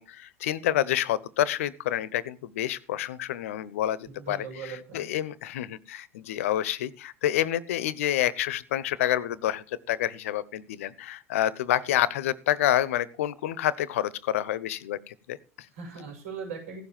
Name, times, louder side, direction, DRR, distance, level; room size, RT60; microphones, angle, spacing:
voice 1, 0.0-15.7, left 12 dB, 70° left, 20 dB, 1.0 m, -28 dB
voice 2, 4.1-5.1 15.7-16.8, right 5 dB, 75° right, 2 dB, 6.7 m, -39 dB
16.0 x 7.3 x 7.4 m, 0.38 s
hypercardioid pair, 80°, 8 cm